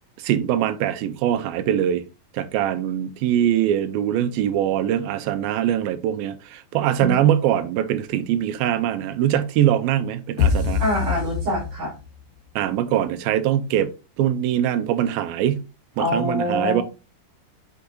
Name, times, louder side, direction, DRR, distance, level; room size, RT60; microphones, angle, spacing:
voice 1, 0.2-2.0 2.3-10.8 12.6-13.9 14.2-15.6 16.0-16.8, right 11 dB, 90° right, 2.5 m, -22 dB
sound 1, 10.4-12.2, left 6 dB, 55° left, 2.7 m, -23 dB
voice 2, 10.8-11.9 16.0-16.8, left 1 dB, 60° right, 4.9 m, -25 dB
8.5 x 4.7 x 2.7 m
omnidirectional pair, 4.2 m